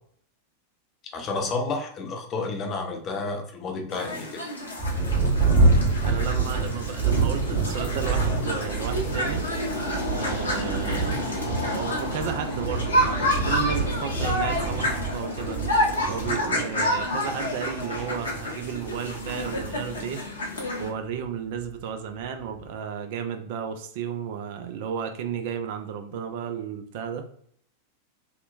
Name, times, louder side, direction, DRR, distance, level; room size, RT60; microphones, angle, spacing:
voice 1, 1.1-4.4, left 3 dB, 30° left, 3 dB, 0.5 m, -30 dB
sound 1, 3.9-20.9, left 1 dB, 75° left, 0.6 m, -29 dB
Thunder, 4.8-20.8 21.6-21.7 22.2-22.7, right 3 dB, 30° right, 1.5 m, -27 dB
voice 2, 6.0-9.4 10.2-11.4 11.7-15.6 16.1-20.2 20.8-27.3, right 7 dB, 50° right, 6 dB, 0.3 m, -33 dB
sound 2, 7.0-18.6, left 1 dB, 10° left, 0.9 m, -42 dB
2.8 x 2.1 x 2.4 m, 0.63 s
figure-of-eight pair, 90°, 0 cm